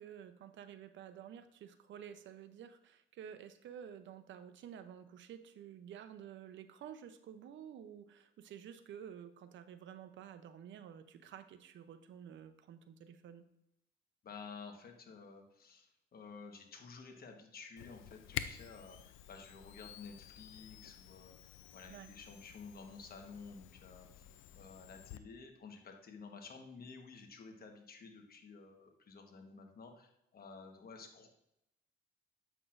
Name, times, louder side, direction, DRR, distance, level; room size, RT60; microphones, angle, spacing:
voice 1, 0.0-13.4 21.9-22.1, right 9 dB, 70° right, 10 dB, 0.6 m, -51 dB
voice 2, 14.2-21.4 21.7-24.2 24.6-31.3, left 4 dB, 50° left, 4 dB, 1.2 m, -52 dB
Camera, 17.8-25.2, left 11 dB, 90° left, 0.4 m, -49 dB
7.9 x 5.9 x 2.5 m, 0.84 s
cardioid pair, 90°, 20 cm